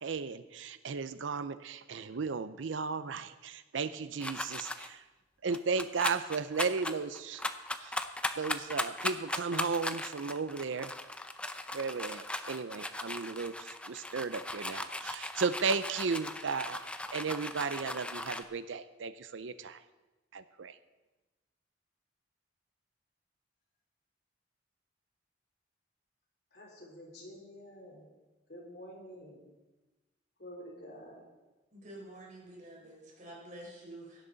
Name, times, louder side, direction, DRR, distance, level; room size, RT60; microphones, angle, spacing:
voice 1, 0.0-5.0 5.4-7.5 7.8-8.0 8.4-10.9 11.7-16.8 17.1-19.8 20.3-20.8, right 5 dB, 85° right, 13 dB, 0.6 m, -35 dB
sound 1, 4.2-4.9 5.5-18.4, left 1 dB, 5° left, 0.5 m, -38 dB
voice 2, 26.5-28.1 28.5-29.4 30.4-31.2, equal, 55° left, -2 dB, 3.8 m, -49 dB
voice 3, 31.7-34.2, right 1 dB, 40° right, -2 dB, 4.5 m, -49 dB
17.0 x 11.0 x 4.0 m, 1.1 s
head